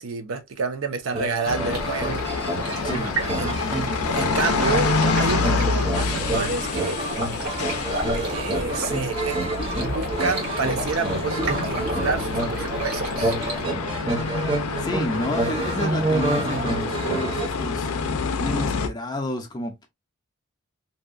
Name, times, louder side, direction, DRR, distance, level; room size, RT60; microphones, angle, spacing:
voice 1, 0.0-2.2 3.4-3.6 4.1-7.0 8.1-9.4 9.9-13.3, right 4 dB, 70° right, 0.5 m, -29 dB
sound 1, 1.1-17.5, right 2 dB, 25° right, 0.6 m, -29 dB
sound 2, 1.5-18.9, left 4 dB, 85° left, 0.4 m, -28 dB
Stream, 1.7-13.7, right 1 dB, 85° right, 1.2 m, -32 dB
voice 2, 2.8-3.2 14.5-19.9, left 1 dB, 20° left, 0.4 m, -31 dB
2.7 x 2.2 x 2.4 m
head